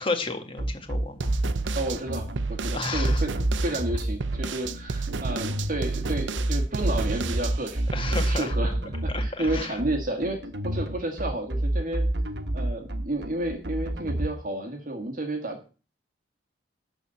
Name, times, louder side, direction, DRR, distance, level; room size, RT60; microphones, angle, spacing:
voice 1, 0.0-1.3 2.7-3.2 7.9-8.7 9.1-9.7, left 3 dB, 30° left, 5 dB, 1.8 m, -32 dB
sound 1, 0.6-14.3, right 1 dB, 65° right, 1.3 m, -28 dB
sound 2, 1.2-8.5, right 4 dB, 85° right, 0.6 m, -32 dB
voice 2, 1.8-10.4 10.6-12.1 12.5-15.7, right 1 dB, 50° right, 3 dB, 1.7 m, -31 dB
12.0 x 4.0 x 7.8 m, 0.35 s
head